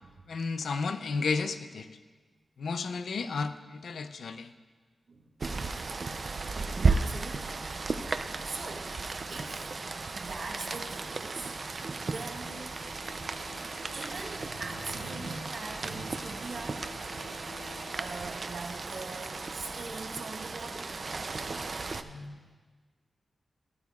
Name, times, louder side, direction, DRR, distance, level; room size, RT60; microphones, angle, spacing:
voice 1, 0.3-1.9 2.6-4.5, left 4 dB, 80° left, 10 dB, 0.4 m, -32 dB
Rain, 5.4-22.0, right 4 dB, 40° right, 0.4 m, -35 dB
voice 2, 6.9-7.6 8.4-9.0 9.3-9.6 10.1-11.5 11.8-12.8 13.9-16.9 17.9-20.9 22.0-22.5, right 3 dB, 60° right, 0 dB, 1.1 m, -41 dB
sound 1, 12.7-18.2, left 2 dB, 55° left, 2.4 m, -50 dB
14.5 x 11.5 x 2.3 m, 1.4 s
wide cardioid pair, 175°, 0 cm